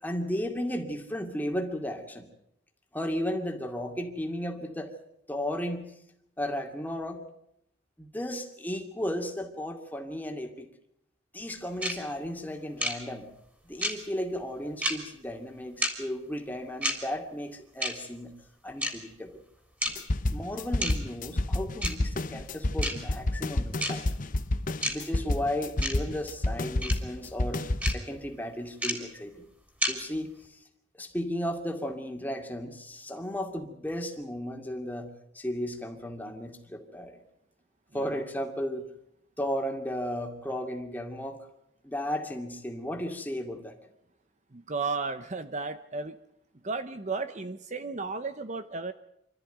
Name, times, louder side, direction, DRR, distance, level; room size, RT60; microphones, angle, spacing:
voice 1, 0.0-2.3 2.9-4.9 5.3-5.9 6.4-7.2 8.0-10.7 11.3-13.3 13.6-18.3 18.6-19.4 20.3-24.0 24.9-29.5 29.9-30.6 31.0-37.2 37.9-38.9 39.4-41.4 41.8-43.8, equal, 10° left, 3 dB, 2.5 m, -34 dB
sound 1, 11.8-11.9 12.8-12.9 13.8-13.9 14.8-14.9 15.8-15.9 16.8-16.9 17.8-17.9 18.8-18.9 19.8-19.9 20.8-20.9 21.8-21.9 22.8-22.9 23.8-23.9 24.8-24.9 25.8-25.9 26.8-26.9 27.8-27.9 28.8-28.9 29.8-29.9, equal, 10° right, 3.6 m, -28 dB
sound 2, 19.9-27.9, left 1 dB, 45° left, 0.9 m, -29 dB
voice 2, 44.5-46.2 46.6-48.9, right 4 dB, 35° right, 10 dB, 0.8 m, -34 dB
26.0 x 13.5 x 9.2 m, 0.78 s
head